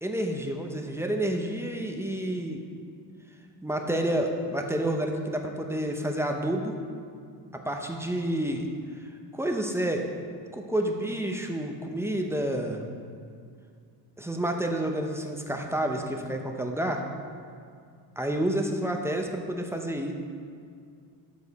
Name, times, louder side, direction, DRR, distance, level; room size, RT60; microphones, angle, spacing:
voice 1, 0.0-2.6 3.6-6.7 7.7-8.7 9.3-10.1 10.5-12.9 14.2-17.0 18.2-20.1, right 1 dB, 5° right, 3 dB, 0.6 m, -29 dB
13.0 x 4.8 x 4.1 m, 2.2 s
cardioid pair, 130°, 40 cm